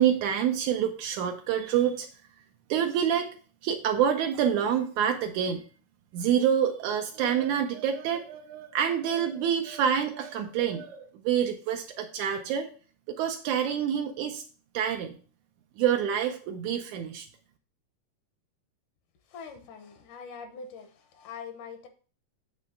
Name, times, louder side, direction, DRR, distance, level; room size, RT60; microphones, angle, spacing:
voice 1, 0.0-2.1 2.7-3.3 3.6-5.7 6.1-12.7 13.1-14.4 14.7-15.2 15.8-17.3, right 9 dB, 80° right, 4 dB, 2.0 m, -27 dB
voice 2, 19.3-21.9, left 5 dB, 75° left, 7 dB, 2.4 m, -43 dB
8.8 x 3.2 x 6.4 m, 0.40 s
omnidirectional pair, 3.7 m